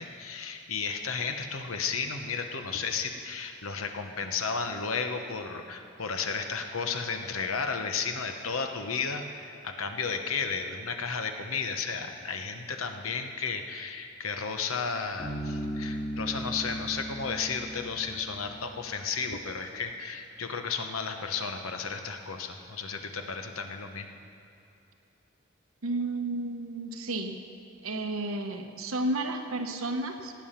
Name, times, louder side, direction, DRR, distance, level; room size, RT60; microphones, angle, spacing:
voice 1, 0.0-24.1, left 5 dB, 85° left, 5 dB, 1.1 m, -33 dB
Bass guitar, 15.2-18.9, right 1 dB, 30° left, 2.9 m, -37 dB
voice 2, 25.8-27.3 27.8-30.3, right 2 dB, 90° right, 5 dB, 1.1 m, -32 dB
16.5 x 9.3 x 5.8 m, 2.7 s
head